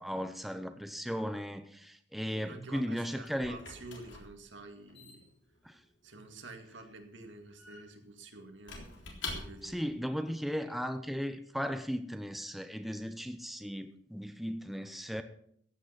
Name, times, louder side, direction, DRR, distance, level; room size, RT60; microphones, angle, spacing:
voice 1, 0.0-3.6 5.6-5.8 9.6-15.2, equal, ahead, 0.7 m, -36 dB
voice 2, 2.3-5.3 6.0-9.8, right 2 dB, 90° right, 2.2 m, -49 dB
Squeak / Wood, 2.7-9.9, left 3 dB, 90° left, 3.7 m, -47 dB
15.0 x 9.1 x 5.8 m
head